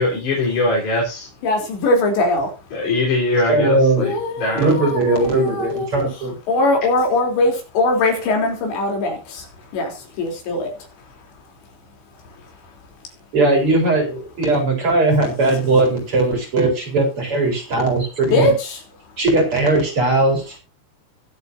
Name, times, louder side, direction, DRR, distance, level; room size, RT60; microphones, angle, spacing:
voice 1, 0.0-1.3 2.7-4.1 4.4-4.7, left 2 dB, 45° left, -5 dB, 5.4 m, -21 dB
voice 2, 1.4-2.5 4.0-5.9 6.5-9.4 9.7-9.9 10.2-10.7 18.2-18.8, left 2 dB, 75° left, 2 dB, 5.9 m, -20 dB
voice 3, 3.5-4.2 4.5-6.3 13.3-18.5 19.2-20.6, right 2 dB, 30° right, 3 dB, 4.9 m, -18 dB
22.0 x 8.2 x 2.7 m, 0.29 s
omnidirectional pair, 5.1 m